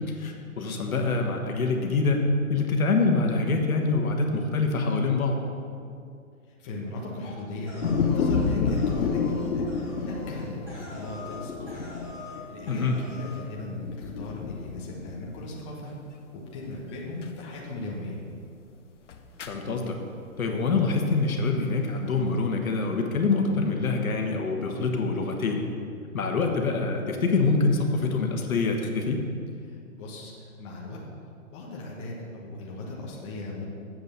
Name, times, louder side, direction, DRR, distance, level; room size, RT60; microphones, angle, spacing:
voice 1, 0.1-5.4 12.7-13.0 19.5-20.0 20.4-25.6 26.1-29.2, left 3 dB, 75° left, 3 dB, 1.6 m, -25 dB
voice 2, 6.5-9.7 10.0-11.9 12.3-15.9 16.3-18.2 29.6-31.0 31.5-33.6, left 2 dB, 20° left, -3 dB, 1.2 m, -38 dB
sound 1, 7.7-11.4 11.7-12.4 12.7-13.4, left 1 dB, 5° right, 1.9 m, -42 dB
sound 2, 7.8-13.4 13.8-15.6 15.9-16.0 17.2-17.4 19.1-19.6, left 5 dB, 55° left, 0.9 m, -29 dB
7.8 x 6.7 x 6.8 m, 2.4 s
hypercardioid pair, 155°, 43 cm